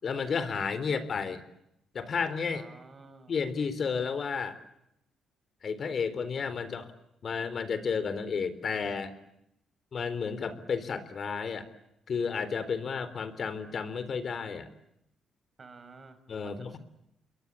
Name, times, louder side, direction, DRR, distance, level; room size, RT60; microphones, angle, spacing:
voice 1, 0.0-1.4 1.9-2.7 3.3-4.6 5.6-6.9 7.2-9.1 9.9-11.7 12.1-14.7 16.3-16.8, left 5 dB, 50° left, 14 dB, 3.9 m, -32 dB
voice 2, 2.5-3.4 15.6-16.2 16.4-16.8, right 4 dB, 35° right, 11 dB, 5.6 m, -51 dB
29.0 x 22.5 x 8.5 m, 0.80 s
cardioid pair, 90°, 0 cm